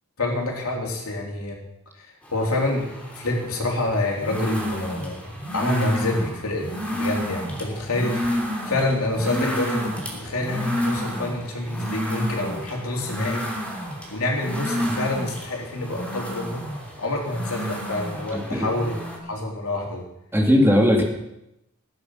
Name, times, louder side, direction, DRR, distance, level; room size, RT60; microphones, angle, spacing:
voice 1, 0.2-1.6 2.3-2.9 3.1-13.5 14.1-16.6 17.0-20.0, left 2 dB, 70° left, 0 dB, 3.4 m, -27 dB
sound 1, 2.2-19.2, equal, 5° left, 3.1 m, -31 dB
voice 2, 18.3-18.7 20.3-21.0, left 1 dB, 10° right, 0 dB, 2.3 m, -18 dB
17.0 x 9.9 x 6.3 m, 0.86 s
head